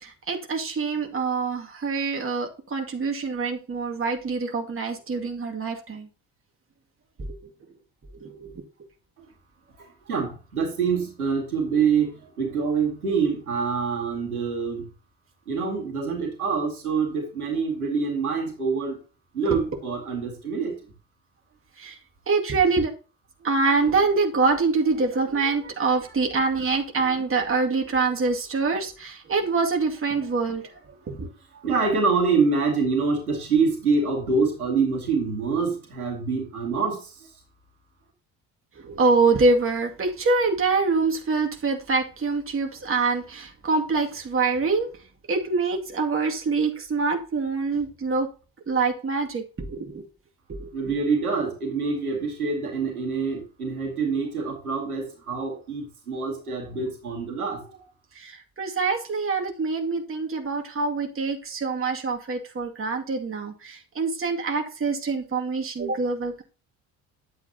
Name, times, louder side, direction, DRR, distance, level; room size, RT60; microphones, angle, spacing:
voice 1, 0.0-6.1 7.3-7.4 8.2-8.6 19.5-19.6 21.8-22.0 22.3-22.9 23.4-31.3 38.8-44.9 45.3-48.3 48.7-50.0 50.5-51.0 58.1-66.4, right 4 dB, 30° right, 2.3 m, -25 dB
voice 2, 9.8-14.9 15.5-19.0 19.3-20.7 31.5-37.3 50.7-57.8, right 5 dB, 85° right, 2.1 m, -26 dB
10.5 x 8.2 x 2.9 m
figure-of-eight pair, 55°, 43 cm